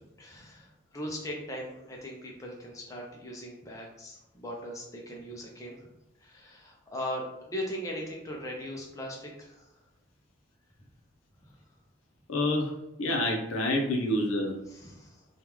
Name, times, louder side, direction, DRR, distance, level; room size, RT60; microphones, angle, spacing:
voice 1, 0.2-5.9 6.2-9.7 11.5-11.6 14.7-15.2, equal, 15° left, -1 dB, 0.5 m, -39 dB
voice 2, 12.3-12.7 13.0-14.6, left 1 dB, 85° left, 2 dB, 0.6 m, -27 dB
3.4 x 2.4 x 3.0 m, 0.88 s
head